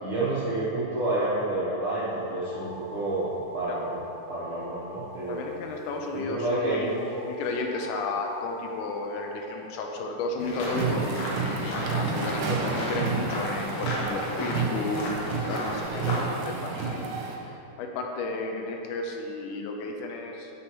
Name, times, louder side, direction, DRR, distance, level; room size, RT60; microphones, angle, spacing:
voice 1, 0.0-4.0 4.3-5.4 6.1-7.1 12.4-12.6, right 2 dB, 70° right, -8 dB, 1.2 m, -29 dB
sound 1, 2.3-6.2 6.8-10.1 11.2-14.4, equal, 35° right, 1.6 m, -46 dB
voice 2, 5.3-11.1 11.6-17.1 17.5-20.5, left 3 dB, 85° left, 2 dB, 2.1 m, -33 dB
sound 2, 10.4-16.3, left 1 dB, 65° left, 1.6 m, -34 dB
sound 3, 10.6-17.3, right 5 dB, 90° right, 2.2 m, -30 dB
7.0 x 6.8 x 2.9 m, 2.9 s
omnidirectional pair, 3.6 m